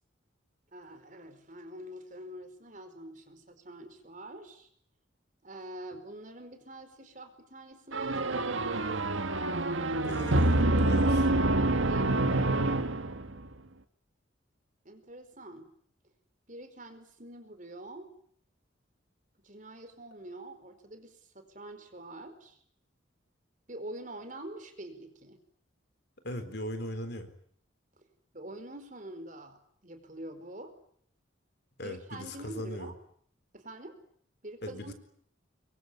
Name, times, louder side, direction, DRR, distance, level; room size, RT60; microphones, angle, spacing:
voice 1, 0.7-4.7 5.4-8.5 11.9-12.2 14.8-15.7 16.5-18.1 19.4-22.6 23.7-25.4 28.0-28.1 28.3-30.7 31.8-32.9 33.5-34.0 34.4-34.9, right 1 dB, 40° right, 9 dB, 4.7 m, -45 dB
sound 1, 7.9-13.5, right 2 dB, 75° right, 1.9 m, -27 dB
voice 2, 10.0-11.3 26.2-27.3 31.8-32.9 34.6-34.9, equal, 55° left, 10 dB, 4.1 m, -38 dB
26.5 x 23.5 x 9.7 m, 0.63 s
head